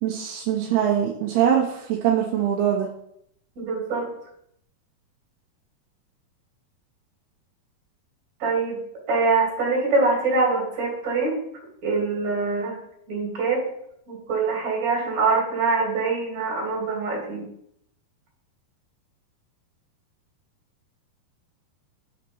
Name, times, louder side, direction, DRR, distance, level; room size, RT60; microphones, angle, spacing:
voice 1, 0.0-2.9, right 9 dB, 80° right, -2 dB, 3.0 m, -22 dB
voice 2, 3.6-4.1 8.4-8.8 9.1-11.4 11.8-12.8 13.1-13.6 14.1-17.5, right 4 dB, 45° right, -2 dB, 4.1 m, -24 dB
7.4 x 5.9 x 5.4 m, 0.72 s
omnidirectional pair, 4.6 m